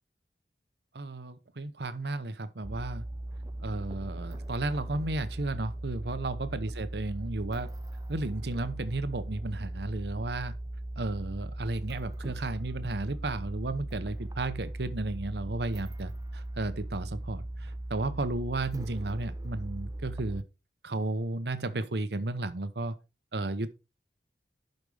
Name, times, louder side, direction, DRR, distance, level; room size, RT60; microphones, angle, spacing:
voice 1, 0.9-3.0 3.6-7.7 8.1-10.5 11.0-20.4 20.8-23.0 23.3-23.7, right 2 dB, 70° right, 0.9 m, -33 dB
sound 1, 2.6-20.4, right 1 dB, 20° right, 0.5 m, -38 dB
11.0 x 5.3 x 3.4 m
head